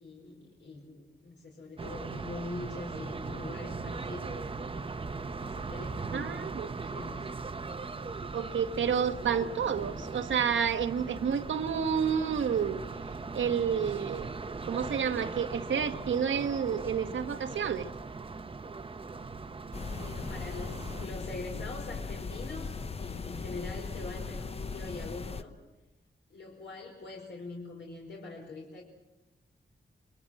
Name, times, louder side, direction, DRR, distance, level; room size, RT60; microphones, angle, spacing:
voice 1, 0.0-4.4 5.3-7.3 19.9-25.6 26.3-28.8, left 2 dB, 70° left, -1 dB, 4.7 m, -43 dB
sound 1, 1.8-21.1, right 4 dB, 30° right, 0.9 m, -39 dB
voice 2, 6.1-6.7 8.3-12.8 13.3-14.3 14.7-17.9, right 7 dB, 90° right, 8 dB, 1.3 m, -30 dB
sound 2, 19.7-25.4, left 4 dB, 30° left, 0.8 m, -38 dB
27.0 x 22.5 x 7.6 m, 1.0 s
wide cardioid pair, 170°, 19 cm